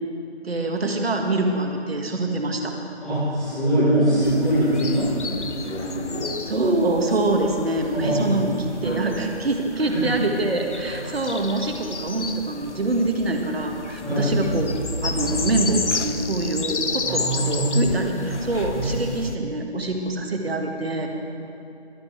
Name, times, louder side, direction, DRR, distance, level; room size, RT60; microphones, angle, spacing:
voice 1, 0.4-2.7 6.5-8.5 8.8-14.8 15.0-21.1, right 2 dB, 60° right, 3 dB, 1.8 m, -25 dB
voice 2, 3.0-6.2 7.9-8.4 8.8-9.0 9.8-10.0 14.0-14.3 17.0-17.8 18.3-18.4 18.7-18.9, right 1 dB, ahead, -19 dB, 0.9 m, -23 dB
sound 1, 4.2-19.4, left 4 dB, 85° left, 1.0 m, -33 dB
sound 2, 14.2-16.9, equal, 20° right, 1.7 m, -31 dB
23.0 x 8.1 x 4.6 m, 2.8 s
figure-of-eight pair, 165°, 34 cm